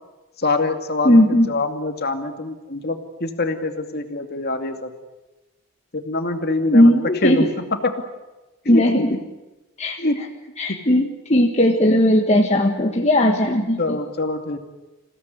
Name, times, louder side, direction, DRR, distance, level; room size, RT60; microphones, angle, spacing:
voice 1, 0.4-1.2 1.5-4.9 5.9-8.0 8.7-8.8 9.1-9.2 10.0-10.2 10.7-10.8 13.8-14.6, left 2 dB, 45° left, 5 dB, 2.5 m, -24 dB
voice 2, 1.0-1.5 6.6-7.5 8.6-9.2 9.8-10.0 10.6-14.0, left 1 dB, 30° left, 1 dB, 1.5 m, -17 dB
27.5 x 17.0 x 9.5 m, 1.1 s
head